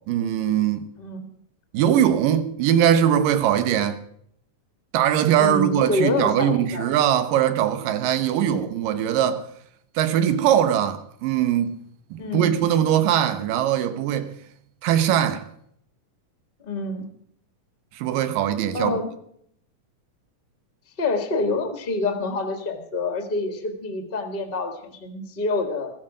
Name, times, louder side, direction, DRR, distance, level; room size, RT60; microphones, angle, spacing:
voice 1, 0.1-0.9 1.7-4.0 4.9-9.5 10.0-11.7 12.1-14.4 14.8-15.4 18.0-19.0, right 10 dB, 85° right, 2.6 m, -21 dB
voice 2, 1.0-1.3 5.4-6.9 8.4-8.7 12.2-12.5 16.6-17.1 18.7-19.1 21.0-25.9, left 2 dB, 30° left, 1.0 m, -27 dB
15.0 x 14.5 x 4.9 m
omnidirectional pair, 3.8 m